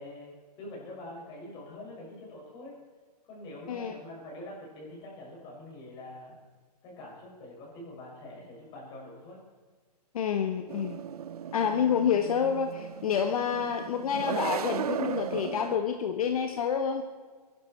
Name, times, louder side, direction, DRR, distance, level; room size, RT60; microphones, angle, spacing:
voice 1, 0.0-2.8 3.2-6.4 6.8-9.4, left 1 dB, 20° left, -3 dB, 5.6 m, -45 dB
voice 2, 3.7-4.0 10.1-11.0 11.5-17.0, left 7 dB, 60° left, 6 dB, 1.3 m, -28 dB
sound 1, 10.7-15.8, right 9 dB, 65° right, 0.8 m, -36 dB
22.5 x 11.5 x 4.4 m, 1.5 s
hypercardioid pair, 165°, 21 cm